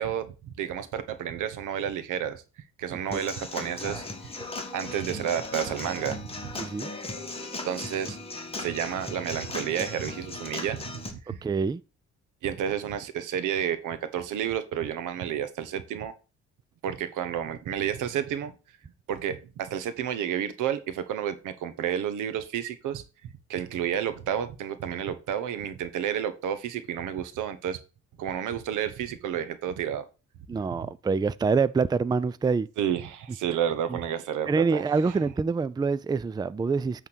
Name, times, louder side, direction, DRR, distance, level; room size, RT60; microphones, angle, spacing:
voice 1, 0.0-2.4 2.8-4.3 4.7-6.6 7.6-8.2 8.6-11.4 12.4-16.1 16.8-18.5 19.1-23.0 23.5-27.8 28.2-30.0 30.8-30.9 32.8-35.2, right 9 dB, 85° right, 1.1 m, -31 dB
Human voice / Acoustic guitar / Drum, 3.1-11.1, left 2 dB, 20° left, 1.8 m, -37 dB
voice 2, 6.6-6.9 11.4-11.8 30.5-32.7 33.9-34.0 34.5-37.1, right 4 dB, 15° right, 0.4 m, -26 dB
8.9 x 3.7 x 6.2 m
cardioid pair, 90°, 30 cm